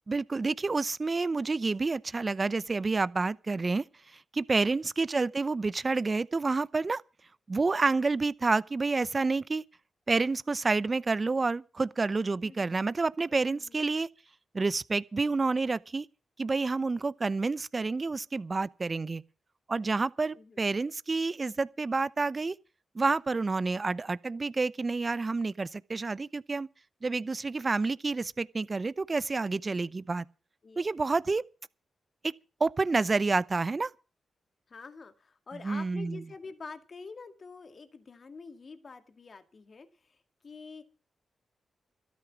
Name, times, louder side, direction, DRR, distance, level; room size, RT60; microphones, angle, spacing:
voice 1, 0.1-3.8 4.3-7.0 7.5-9.6 10.1-14.1 14.5-16.1 16.4-19.2 19.7-22.5 22.9-26.7 27.0-30.2 30.8-31.5 32.2-32.3 32.6-33.9 35.6-36.2, right 3 dB, 40° right, 0.7 m, -29 dB
voice 2, 12.4-12.7 13.3-13.8 16.8-16.9 20.3-20.6 29.6-29.9 30.6-30.9 34.7-40.8, left 4 dB, 55° left, 2.1 m, -47 dB
14.0 x 13.0 x 6.0 m
supercardioid pair, 45°, 0 cm